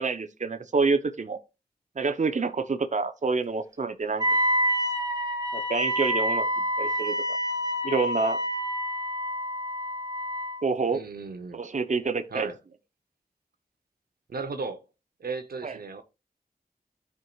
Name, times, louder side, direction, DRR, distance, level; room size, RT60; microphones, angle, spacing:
voice 1, 0.0-1.4 2.0-4.2 5.5-6.5 6.8-7.4 7.8-8.4 10.6-11.0 11.5-12.5 15.6-15.8, right 4 dB, 55° right, 0.8 m, -27 dB
Wind instrument woodwind instrument, 4.2-10.6, equal, 25° right, 1.9 m, -27 dB
voice 2, 10.9-11.6 12.3-12.5 14.3-14.8 15.2-16.0, right 4 dB, 90° right, 0.8 m, -35 dB
12.5 x 4.6 x 2.4 m
cardioid pair, 40°, 15 cm